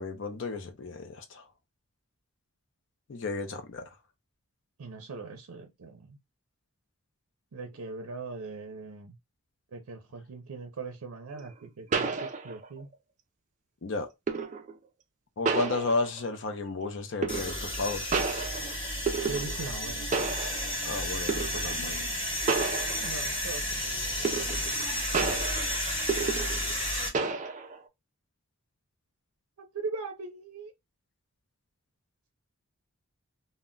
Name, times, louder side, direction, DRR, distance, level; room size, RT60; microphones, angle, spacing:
voice 1, 0.0-1.4 3.1-3.8 13.8-14.1 15.4-18.1 20.8-22.0 25.2-25.4, left 3 dB, 55° left, 0.5 m, -33 dB
voice 2, 4.8-6.2 7.5-9.2 9.7-12.9 19.3-20.1 23.0-24.6 29.6-30.7, right 4 dB, 85° right, 0.5 m, -40 dB
sound 1, 11.3-11.4 11.9-12.8 14.3-14.7 15.5-16.3 17.2-17.8 18.1-19.8 20.1-20.8 21.3-21.7 22.5-23.4 24.2-24.8 25.1-26.8 27.1-27.8, right 4 dB, 35° right, 0.3 m, -31 dB
sound 2, 17.3-27.1, left 1 dB, 25° left, 0.8 m, -32 dB
2.2 x 2.1 x 3.6 m
head